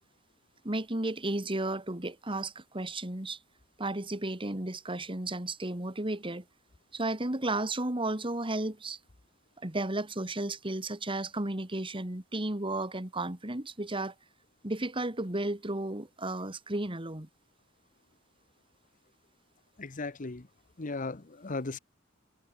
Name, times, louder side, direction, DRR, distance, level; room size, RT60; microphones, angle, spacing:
voice 1, 0.6-3.4 3.8-6.4 6.9-9.0 9.6-14.1 14.6-17.3, right 2 dB, 25° right, 2.3 m, -33 dB
voice 2, 19.8-20.5 20.8-21.8, left 3 dB, 40° left, 1.0 m, -36 dB
head